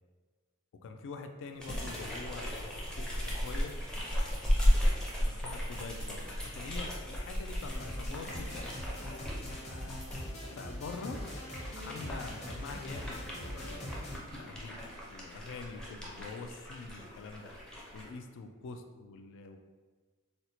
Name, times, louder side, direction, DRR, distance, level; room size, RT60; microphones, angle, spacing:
voice 1, 0.8-3.7 5.2-6.3 6.5-10.0 10.5-11.2 11.8-14.7 15.1-17.5 17.9-19.6, left 4 dB, 60° left, 5 dB, 0.3 m, -45 dB
sound 1, 1.6-10.2 10.8-18.1, equal, 5° left, 0.5 m, -35 dB
sound 2, 7.6-14.2, equal, 30° left, 0.8 m, -42 dB
4.1 x 2.1 x 2.7 m, 1.4 s
head